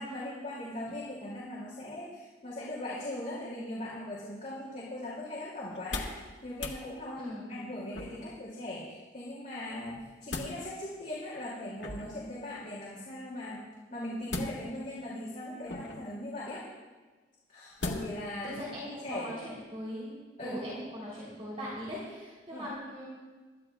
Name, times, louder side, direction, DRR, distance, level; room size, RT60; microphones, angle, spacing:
voice 1, 0.0-13.6 13.9-16.7 17.5-19.3 20.4-20.6 22.5-22.7, left 1 dB, 45° left, -6 dB, 2.5 m, -39 dB
sound 1, 5.7-6.2 6.5-6.8 7.9-8.4 9.8-10.6 11.8-12.3 14.3-14.9 15.7-16.1 17.8-18.3 18.7-18.8, left 2 dB, 85° left, 1.7 m, -38 dB
voice 2, 18.4-20.1 20.4-23.1, equal, 35° right, -7 dB, 3.3 m, -40 dB
25.0 x 13.0 x 2.3 m, 1.3 s
head